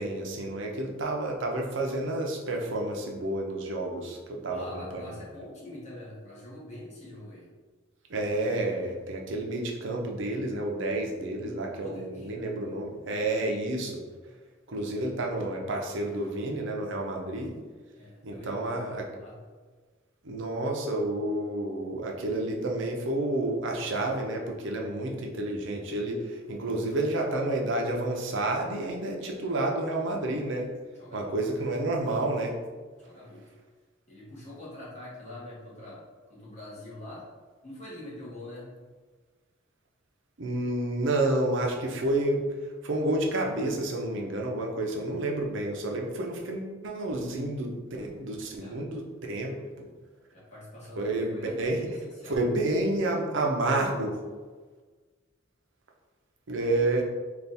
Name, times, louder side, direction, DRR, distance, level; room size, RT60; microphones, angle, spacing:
voice 1, 0.0-5.0 8.1-14.0 14.7-17.6 18.2-19.1 20.2-30.7 31.1-32.6 40.4-42.5 42.8-49.9 51.0-52.0 52.2-54.2 56.5-57.0, right 2 dB, 65° right, 0 dB, 0.6 m, -30 dB
voice 2, 4.5-7.5 11.7-12.3 18.0-19.4 30.9-31.7 33.0-33.4 34.1-36.0 36.3-37.3 37.6-38.7 48.6-48.8 50.3-52.4, left 1 dB, 35° left, -6 dB, 1.2 m, -44 dB
3.4 x 2.5 x 4.0 m, 1.4 s
head